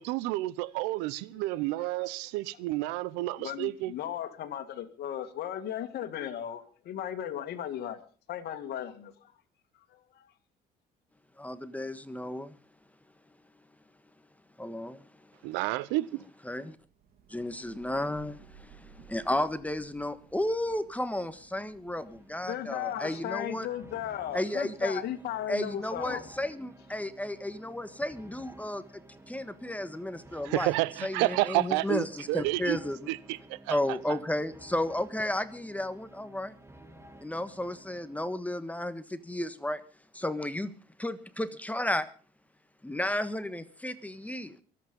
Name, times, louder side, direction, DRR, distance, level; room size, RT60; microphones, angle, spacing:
voice 1, 0.0-3.9 15.4-16.2 30.4-32.8 33.1-33.8, right 18 dB, 85° right, 0.7 m, -30 dB
voice 2, 3.4-8.0 8.3-9.3 9.9-10.3 22.5-26.3, left 10 dB, 65° left, 2.0 m, -36 dB
voice 3, 11.4-12.6 14.6-15.5 16.4-16.8 17.3-23.7 24.3-25.0 25.5-29.0 29.3-30.7 31.0-33.1 33.7-36.5 37.2-39.8 40.1-40.7 41.0-42.1 42.8-44.6, left 1 dB, 10° left, 1.4 m, -33 dB
Thunder / Rain, 16.8-22.6, right 7 dB, 60° right, 2.9 m, -56 dB
sound 1, 21.8-38.6, right 1 dB, 15° right, 2.2 m, -54 dB
23.5 x 8.6 x 5.3 m
supercardioid pair, 75°, 18 cm